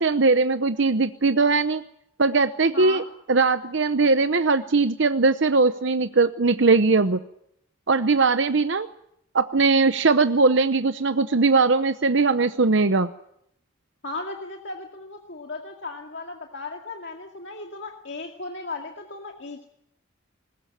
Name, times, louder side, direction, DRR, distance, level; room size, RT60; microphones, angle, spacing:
voice 1, 0.0-1.8 2.2-3.0 3.3-7.2 7.9-8.9 9.3-13.1, right 3 dB, 65° right, 10 dB, 0.8 m, -20 dB
voice 2, 2.7-3.1 14.0-19.7, left 3 dB, 60° left, 2 dB, 2.2 m, -36 dB
21.0 x 20.0 x 8.8 m, 0.74 s
head